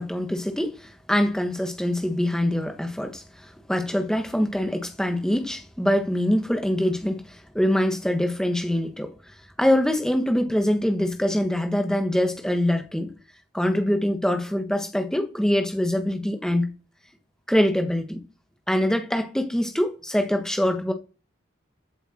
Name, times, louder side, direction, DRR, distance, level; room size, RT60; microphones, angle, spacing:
voice 1, 0.0-9.1 9.6-13.1 13.5-16.7 17.5-18.2 18.7-20.9, left 1 dB, 5° left, 1.4 m, -24 dB
14.0 x 7.9 x 4.4 m
head